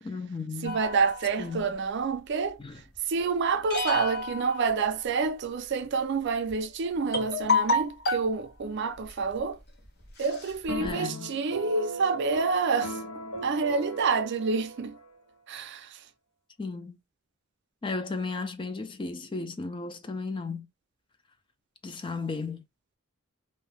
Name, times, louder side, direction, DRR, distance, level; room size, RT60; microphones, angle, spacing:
voice 1, 0.0-0.8 1.4-1.6 2.6-2.8 10.8-11.3 16.6-17.0 17.8-20.7 21.8-22.6, left 3 dB, 25° left, 0.4 m, -34 dB
sound 1, 0.6-2.0 3.7-5.4 6.5-6.6 7.1-8.4 9.1-9.4 9.8-9.9 10.2-10.9, left 2 dB, 50° left, 1.0 m, -30 dB
voice 2, 0.6-2.6 3.1-9.6 10.2-13.0 13.4-15.0 15.5-16.0, right 4 dB, 55° right, 0.4 m, -28 dB
sound 2, 10.7-15.1, right 2 dB, 80° left, 1.2 m, -37 dB
2.7 x 2.1 x 3.2 m
head